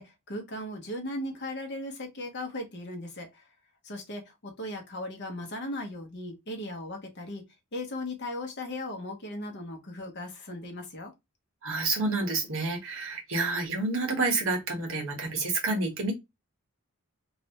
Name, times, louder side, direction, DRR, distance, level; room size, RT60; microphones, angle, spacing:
voice 1, 0.0-3.5 3.8-7.4 7.7-11.1, left 1 dB, 50° left, 0.9 m, -37 dB
voice 2, 11.6-16.1, right 3 dB, 60° right, 1.2 m, -29 dB
3.2 x 2.5 x 2.8 m
head